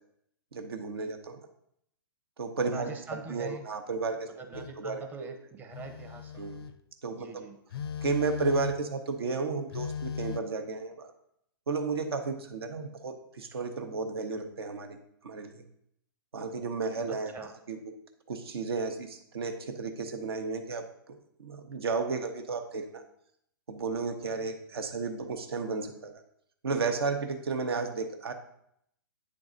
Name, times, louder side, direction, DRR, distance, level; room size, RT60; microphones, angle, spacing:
voice 1, 0.5-1.4 2.4-4.3 4.7-5.4 6.4-6.6 7.0-7.4 8.0-11.1 11.7-15.0 15.2-15.6 16.3-17.8 18.3-23.0 23.7-26.1 26.6-28.3, right 4 dB, 85° right, 5 dB, 0.9 m, -33 dB
voice 2, 2.7-3.6 4.3-6.3 7.1-7.6 17.1-17.5, right 4 dB, 15° right, 5 dB, 0.6 m, -43 dB
Telephone, 4.5-4.8 5.7-6.8 7.7-8.9 9.7-10.4, left 7 dB, 75° left, 0.5 m, -37 dB
8.6 x 3.8 x 3.8 m, 0.74 s
hypercardioid pair, 135°, 13 cm